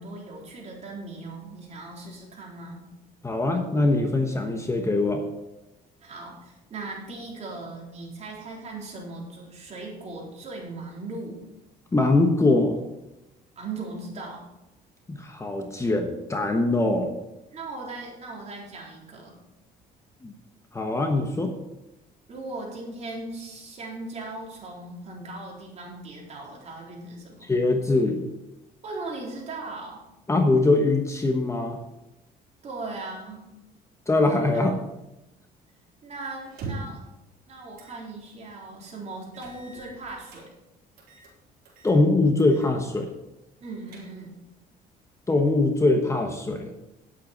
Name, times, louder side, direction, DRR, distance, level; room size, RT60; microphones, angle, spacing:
voice 1, 0.0-2.9 6.0-11.5 13.6-14.5 17.5-19.4 22.3-27.4 28.8-30.0 32.6-33.5 34.5-34.7 36.0-37.0 37.5-40.5 43.6-44.3, right 3 dB, 40° right, -2 dB, 4.0 m, -38 dB
voice 2, 3.2-5.2 11.9-12.8 15.1-17.1 20.2-20.3 20.7-21.6 27.5-28.2 30.3-31.8 34.1-34.7 41.8-43.1 45.3-46.7, left 2 dB, 15° left, 4 dB, 1.1 m, -22 dB
sound 1, 36.4-37.1 37.7-38.0 38.4-38.5 39.3-40.4 41.0-41.3 41.6-42.0 42.4-42.7 43.0-43.1 43.6-44.4, right 3 dB, 70° right, 4.1 m, -41 dB
10.0 x 8.2 x 5.3 m, 0.95 s
cardioid pair, 110°, 17 cm